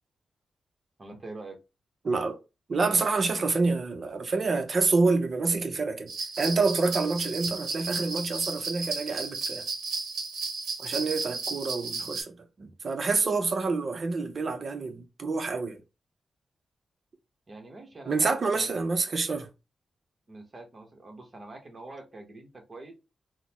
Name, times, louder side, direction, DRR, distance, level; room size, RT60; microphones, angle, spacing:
voice 1, 1.0-1.6 17.5-18.9 20.3-22.9, right 2 dB, 35° right, 1.0 m, -45 dB
voice 2, 2.0-2.4 2.7-6.1 6.4-9.7 10.8-15.8 18.1-19.5, right 3 dB, 50° right, 0.6 m, -27 dB
sound 1, 6.1-12.2, right 4 dB, 90° right, 0.7 m, -34 dB
3.8 x 2.1 x 2.9 m
cardioid pair, 95°, 0 cm